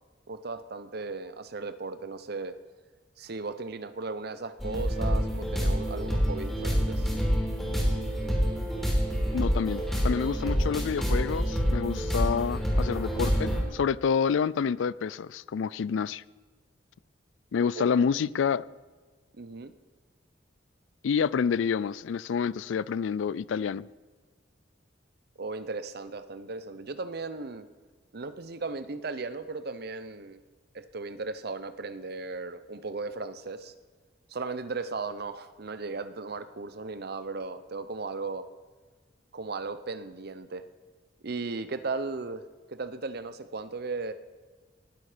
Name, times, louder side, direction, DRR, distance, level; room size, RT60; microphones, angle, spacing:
voice 1, 0.3-2.6 3.2-7.1 17.8-18.0 19.3-19.7 25.4-27.7 28.1-30.4 30.7-33.7 34.3-38.5 39.3-40.6 41.2-42.4 42.7-44.1, right 3 dB, 60° right, 0.8 m, -36 dB
sound 1, 4.6-13.6, equal, ahead, 3.5 m, -27 dB
voice 2, 9.3-16.2 17.5-18.6 21.0-23.9, left 6 dB, 90° left, 0.4 m, -28 dB
19.0 x 8.1 x 5.1 m
head